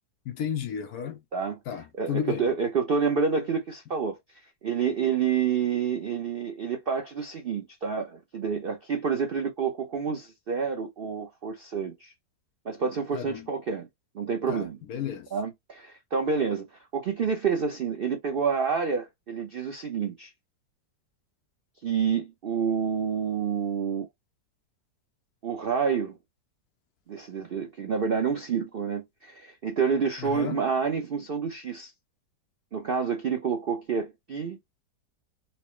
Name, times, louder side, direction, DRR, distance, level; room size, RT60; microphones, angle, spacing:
voice 1, 0.3-1.2 1.7-2.5 13.1-13.5 14.5-15.3 30.2-30.6, left 8 dB, 70° left, 1.1 m, -33 dB
voice 2, 1.3-4.2 4.6-12.1 12.6-13.9 14.1-14.8 15.3-16.7 16.9-20.3 21.8-24.1 25.4-26.1 27.1-31.9 32.7-34.6, right 6 dB, 65° right, 0.5 m, -28 dB
4.3 x 2.0 x 3.0 m
omnidirectional pair, 1.8 m